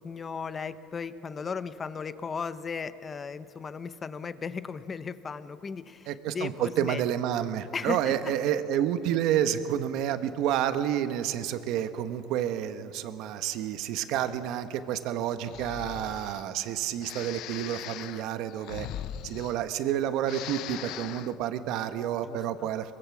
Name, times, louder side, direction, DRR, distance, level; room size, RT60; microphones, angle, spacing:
voice 1, 0.0-7.0 7.7-8.3 22.2-22.7, left 5 dB, 25° left, 13 dB, 0.8 m, -36 dB
voice 2, 6.1-18.9 19.2-22.9, right 10 dB, 65° right, 10 dB, 1.3 m, -29 dB
Breathing, 15.4-16.5 17.0-19.9 20.2-21.4, left 12 dB, 60° left, 0.6 m, -40 dB
23.5 x 22.0 x 7.4 m, 2.7 s
cardioid pair, 140°, 0 cm